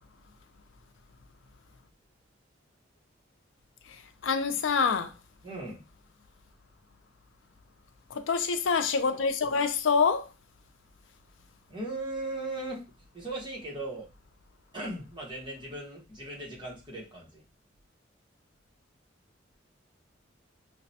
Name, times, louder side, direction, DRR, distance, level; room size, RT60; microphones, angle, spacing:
voice 1, 3.9-5.1 8.1-10.3, left 5 dB, 85° left, 0.5 m, -26 dB
voice 2, 5.4-5.8 11.7-12.8 13.1-14.1 14.7-17.4, right 2 dB, 25° right, 1.1 m, -38 dB
5.8 x 2.1 x 2.7 m
head